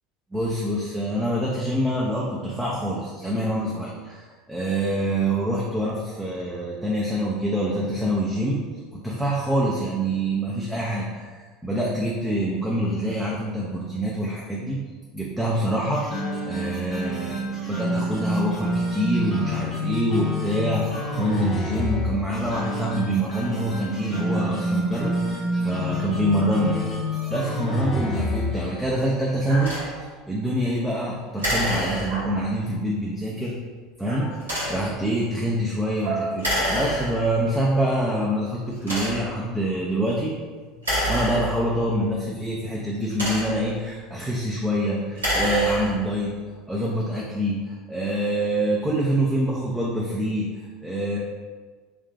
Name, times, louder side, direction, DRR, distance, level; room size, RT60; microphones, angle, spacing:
voice 1, 0.3-8.7 8.9-14.8 15.1-16.1 16.4-26.9 27.3-33.6 34.0-40.3 41.0-46.4 46.7-51.2, right 1 dB, 5° right, -5 dB, 0.5 m, -26 dB
sound 1, 15.9-28.8, left 1 dB, 30° left, 0.8 m, -28 dB
sound 2, 27.7-28.2 29.5-30.4 32.1-32.8 34.1-34.6 36.0-37.3, right 2 dB, 55° right, 1.1 m, -35 dB
sound 3, 29.6-29.9 31.4-32.4 34.4-34.9 36.4-37.4 38.1-38.2 38.8-39.4 40.8-41.9 42.9-43.8 45.0-46.1, equal, 85° right, 1.2 m, -27 dB
3.7 x 2.3 x 2.3 m, 1.5 s
hypercardioid pair, 75°, 0 cm